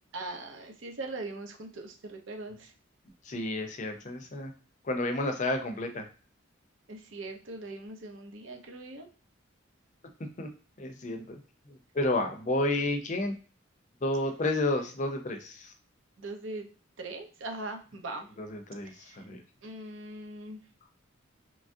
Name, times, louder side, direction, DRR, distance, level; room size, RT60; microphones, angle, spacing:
voice 1, 0.1-2.7 6.9-9.1 16.2-16.6 17.0-18.3 18.8-19.2 19.6-20.6, right 2 dB, 80° right, 3 dB, 0.7 m, -40 dB
voice 2, 3.3-4.5 4.8-6.1 10.4-10.5 10.8-11.4 11.7-13.3 14.0-15.7 18.4-19.4, left 2 dB, 40° left, 5 dB, 0.5 m, -31 dB
3.0 x 2.4 x 2.6 m, 0.38 s
head